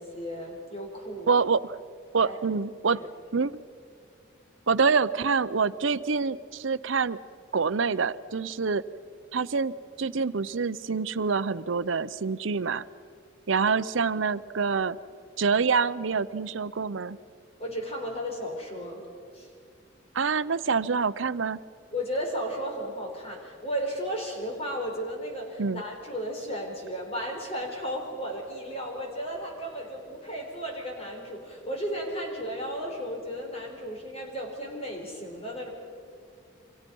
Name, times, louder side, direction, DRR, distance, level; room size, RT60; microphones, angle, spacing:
voice 1, 0.0-1.3 2.2-2.4 2.9-3.1 17.6-19.1 19.3-19.5 21.9-35.7, equal, 30° left, 1 dB, 4.5 m, -34 dB
voice 2, 1.3-1.8 2.1-3.0 3.3-3.5 4.7-7.2 7.5-8.8 9.3-12.8 13.5-15.0 15.4-17.2 20.1-21.6 25.6-25.8, right 5 dB, 80° right, 16 dB, 0.7 m, -26 dB
29.5 x 25.0 x 5.5 m, 2.2 s
head